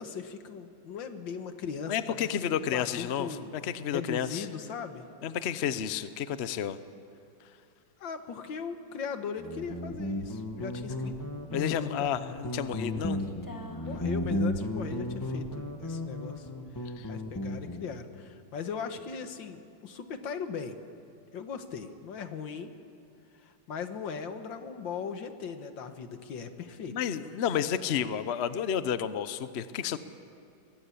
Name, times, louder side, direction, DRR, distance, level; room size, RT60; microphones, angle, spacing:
voice 1, 0.0-5.1 8.0-11.2 11.5-12.1 13.8-16.5 16.8-20.8 21.3-22.7 23.4-26.9, left 6 dB, 80° left, 8 dB, 2.0 m, -39 dB
voice 2, 1.9-3.3 3.6-4.5 5.2-6.8 11.5-13.2 17.0-17.1 26.9-30.0, left 9 dB, 55° left, 13 dB, 0.8 m, -31 dB
Guitar, 9.4-17.9, left 1 dB, 10° left, 1.3 m, -34 dB
23.0 x 18.0 x 8.5 m, 2.6 s
omnidirectional pair, 2.0 m